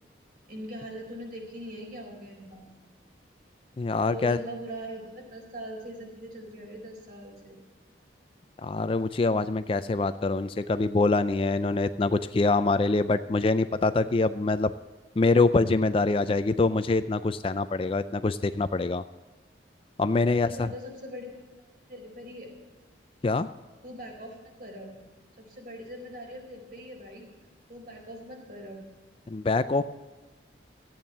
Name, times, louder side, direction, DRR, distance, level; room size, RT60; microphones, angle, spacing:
voice 1, 0.5-2.7 4.0-7.6 20.3-21.5 21.9-22.5 23.8-25.0 25.4-27.3 27.7-28.9, equal, 50° right, 0 dB, 4.3 m, -41 dB
voice 2, 3.8-4.4 8.6-14.7 15.2-19.0 20.0-20.7 23.2-23.5 29.3-29.8, left 3 dB, 30° left, 12 dB, 0.4 m, -25 dB
14.0 x 8.8 x 7.2 m, 1.2 s
head